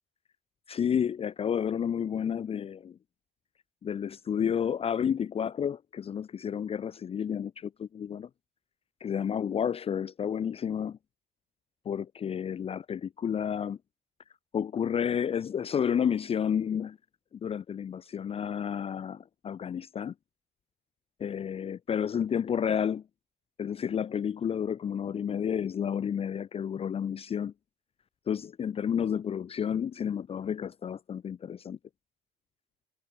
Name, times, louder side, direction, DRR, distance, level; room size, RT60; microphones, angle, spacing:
voice 1, 0.7-3.0 3.8-8.3 9.0-11.0 11.9-13.8 14.5-17.0 17.4-20.1 21.2-23.0 23.6-27.5 28.3-31.8, left 8 dB, 35° left, 0.6 m, -31 dB
cardioid pair, 110°, 17 cm